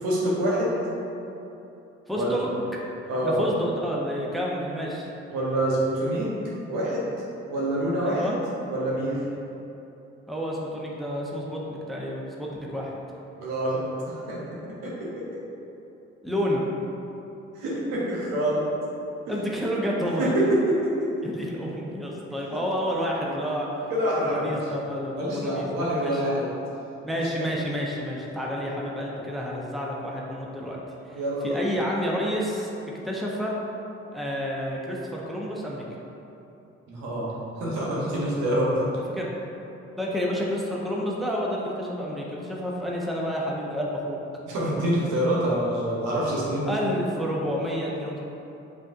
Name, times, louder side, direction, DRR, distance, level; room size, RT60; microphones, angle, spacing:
voice 1, 0.0-0.7 2.1-2.4 3.1-3.5 5.3-6.3 6.7-7.1 7.5-8.3 8.7-9.2 13.4-13.8 14.1-14.4 14.8-15.1 17.5-18.6 20.2-21.1 23.9-24.6 25.2-26.5 27.1-27.3 31.1-31.6 36.9-37.3 37.6-38.9 44.5-46.7, right 1 dB, 70° right, -5 dB, 1.1 m, -26 dB
voice 2, 2.1-2.5 3.2-5.1 8.0-8.4 10.3-12.9 16.2-16.6 19.3-20.3 21.2-23.7 24.2-26.2 27.0-30.8 31.1-32.7 33.0-33.6 34.1-35.8 39.1-39.3 40.0-44.2 46.7-48.2, equal, ahead, -4 dB, 0.9 m, -29 dB
7.3 x 2.7 x 2.6 m, 2.9 s
hypercardioid pair, 40°, 34 cm